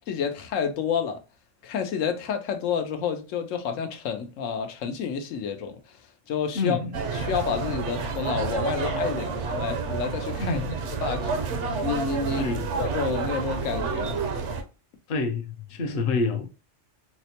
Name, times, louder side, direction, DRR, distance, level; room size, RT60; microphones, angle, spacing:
voice 1, 0.1-1.2 1.6-6.0 6.3-6.8 7.1-10.6 11.0-11.4 11.8-14.2, left 6 dB, 85° left, 1.0 m, -29 dB
voice 2, 6.5-6.9 10.4-10.8 12.3-12.7 15.1-16.5, left 3 dB, 55° left, 0.7 m, -27 dB
sound 1, 6.9-14.6, right 4 dB, 70° right, 0.9 m, -29 dB
4.2 x 2.1 x 2.7 m
omnidirectional pair, 1.3 m